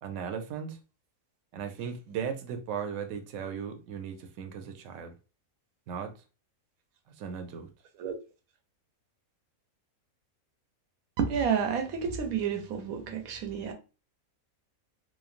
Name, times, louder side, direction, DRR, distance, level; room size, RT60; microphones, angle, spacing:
voice 1, 0.0-0.8 1.5-5.1 5.9-6.1 7.2-7.7, right 7 dB, 70° right, 0.9 m, -37 dB
voice 2, 11.2-13.7, right 7 dB, 85° right, 1.1 m, -30 dB
3.1 x 2.2 x 2.4 m
omnidirectional pair, 1.5 m